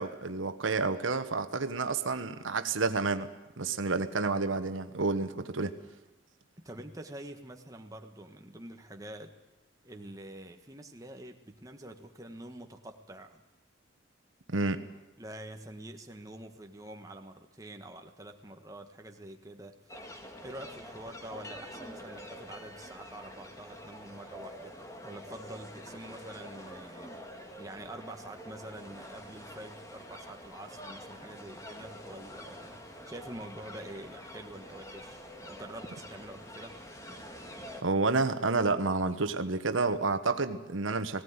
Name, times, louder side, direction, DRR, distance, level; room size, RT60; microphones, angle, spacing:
voice 1, 0.0-3.3 3.6-5.7 14.5-14.8 37.8-41.2, right 3 dB, 85° right, 10 dB, 1.2 m, -29 dB
voice 2, 6.6-9.3 9.8-13.4 15.2-20.0 20.4-24.8 25.0-27.1 27.6-36.7, right 1 dB, 15° right, 4 dB, 1.4 m, -46 dB
sound 1, 19.9-37.8, equal, 15° left, 1.9 m, -46 dB
18.5 x 17.0 x 9.6 m, 1.0 s
head